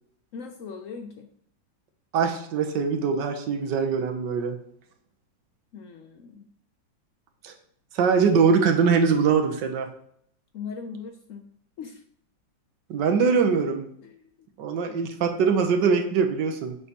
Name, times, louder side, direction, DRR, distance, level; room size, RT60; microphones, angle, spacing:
voice 1, 0.3-1.3 5.7-6.5 10.5-11.5 11.8-12.0 14.0-14.3, left 5 dB, 90° left, 5 dB, 0.7 m, -39 dB
voice 2, 2.1-4.6 7.4-7.5 7.9-9.9 12.9-13.8 14.6-16.7, right 5 dB, 70° right, 5 dB, 1.5 m, -22 dB
6.8 x 6.6 x 2.9 m, 0.67 s
omnidirectional pair, 2.1 m